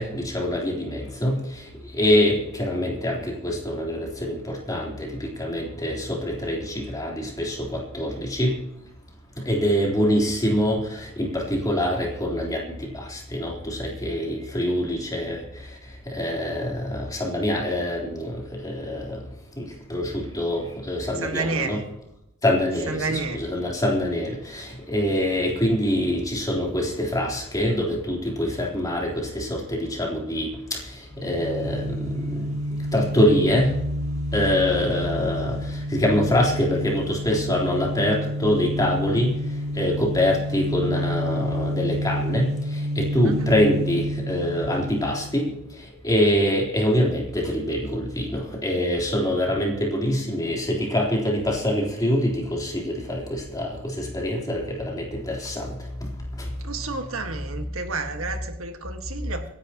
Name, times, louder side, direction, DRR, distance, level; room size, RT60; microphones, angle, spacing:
voice 1, 0.0-1.7 1.9-8.6 9.5-15.4 16.1-19.2 19.6-21.8 22.4-32.3 32.9-33.8 34.3-39.4 39.8-45.6 46.0-55.8 56.4-56.5, left 1 dB, 15° left, -2 dB, 3.7 m, -25 dB
voice 2, 21.2-21.8 22.9-23.5 43.2-43.5 56.6-59.4, right 3 dB, 70° right, 5 dB, 1.7 m, -30 dB
sound 1, 31.1-45.6, equal, 35° right, 5.8 m, -29 dB
25.5 x 10.5 x 3.0 m, 0.83 s
head